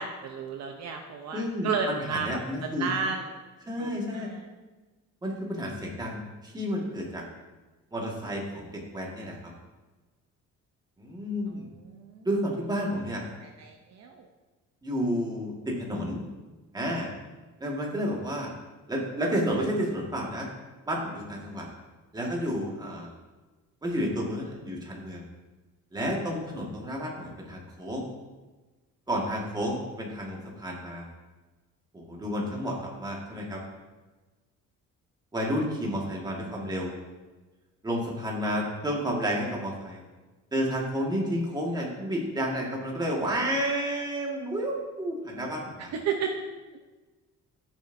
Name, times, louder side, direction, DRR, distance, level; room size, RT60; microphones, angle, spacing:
voice 1, 0.0-3.3 3.8-4.4 11.5-12.3 13.4-14.3 36.5-36.6 45.8-46.3, right 5 dB, 55° right, 4 dB, 0.7 m, -33 dB
voice 2, 1.3-2.9 3.7-4.3 5.2-7.2 7.9-9.3 11.0-11.7 12.2-13.2 14.8-16.2 16.7-17.1 17.6-18.5 18.9-20.5 20.8-21.7 22.1-23.1 23.8-25.2 25.9-28.1 29.1-31.1 31.9-33.6 35.3-36.9 37.8-40.0 40.5-45.9, equal, 15° right, -2 dB, 1.7 m, -31 dB
13.5 x 7.1 x 2.6 m, 1.2 s
cardioid pair, 160°, 31 cm